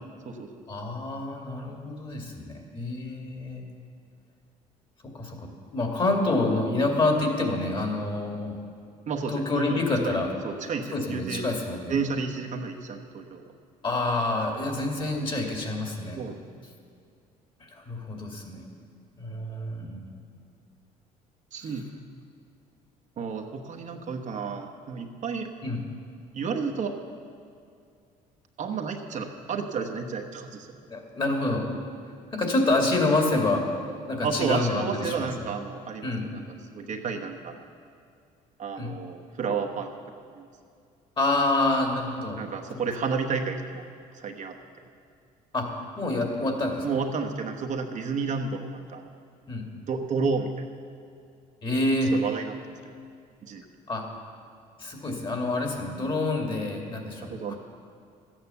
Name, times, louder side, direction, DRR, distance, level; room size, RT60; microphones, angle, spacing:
voice 1, 0.7-3.6 5.0-8.6 9.3-10.3 10.9-11.9 13.8-16.2 17.7-18.7 19.2-20.1 21.6-21.7 25.6-25.8 30.9-31.7 32.3-33.7 34.1-35.5 36.0-36.3 38.8-39.0 41.2-42.4 45.5-46.9 49.5-49.7 51.6-52.1 53.9-54.1 54.8-57.5, left 2 dB, 30° left, 2 dB, 2.5 m, -27 dB
voice 2, 9.1-10.1 10.4-11.4 11.9-13.4 16.2-16.4 21.5-21.9 23.2-25.5 26.3-26.9 28.6-30.7 34.2-36.4 36.7-37.6 38.6-39.9 40.4-40.5 42.4-43.8 44.1-44.5 46.8-49.1 49.9-50.7 52.1-52.5 53.4-53.6 57.3-57.5, right 5 dB, 50° right, 3 dB, 1.2 m, -31 dB
13.5 x 9.0 x 7.0 m, 2.4 s
cardioid pair, 90°, 16 cm